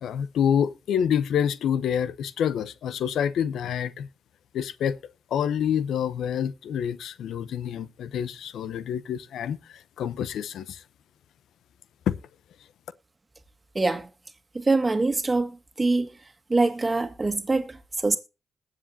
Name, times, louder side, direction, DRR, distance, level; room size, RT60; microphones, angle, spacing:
voice 1, 0.0-4.1 4.5-5.0 5.3-10.8 12.1-12.2, left 8 dB, 85° left, 0.7 m, -27 dB
voice 2, 13.8-14.1 14.5-16.1 16.5-18.2, right 3 dB, 30° right, 1.8 m, -24 dB
21.0 x 7.6 x 2.7 m
cardioid pair, 60°, 0 cm